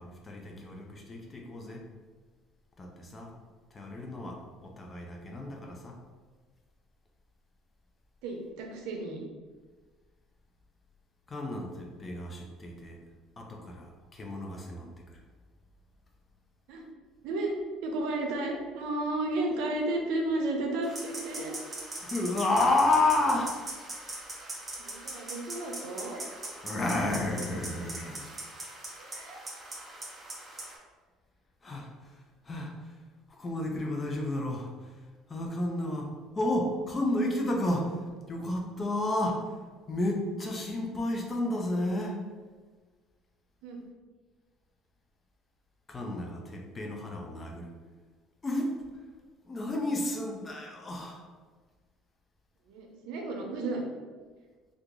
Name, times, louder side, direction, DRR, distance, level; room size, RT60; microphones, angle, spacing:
voice 1, 0.0-1.8 2.8-3.3 3.7-6.0 11.3-13.0 13.4-15.2 22.0-23.6 26.6-28.3 31.6-31.9 32.4-32.7 33.3-34.9 35.3-38.0 38.3-39.4 39.9-42.2 45.9-47.7 48.4-48.8 49.4-51.2, left 2 dB, 20° left, 1 dB, 0.5 m, -31 dB
voice 2, 8.2-9.2 16.7-16.8 17.2-17.6 17.8-21.6 24.8-26.2 29.0-29.4 43.6-43.8 52.7-53.8, right 2 dB, 75° right, 2 dB, 0.6 m, -33 dB
sound 1, 20.8-30.8, right 2 dB, 20° right, 0.6 m, -41 dB
2.9 x 2.4 x 3.7 m, 1.4 s
cardioid pair, 130°, 0 cm